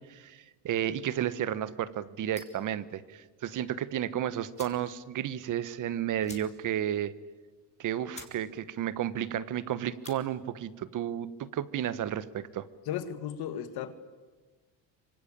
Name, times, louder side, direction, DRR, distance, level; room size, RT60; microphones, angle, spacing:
voice 1, 0.0-7.1 7.8-12.7, right 10 dB, 45° right, 16 dB, 1.2 m, -32 dB
sound 1, 2.3-2.7 4.0-4.1 4.5-4.9 5.2-5.3 5.6-5.7 6.2-6.8 7.2-7.3 7.8-7.9 8.1-8.4 8.7-9.1 9.8-10.2, left 3 dB, 15° left, 3.2 m, -49 dB
voice 2, 12.9-13.9, left 9 dB, 60° left, 11 dB, 2.2 m, -35 dB
25.5 x 25.0 x 8.8 m, 1.3 s
cardioid pair, 145°, 41 cm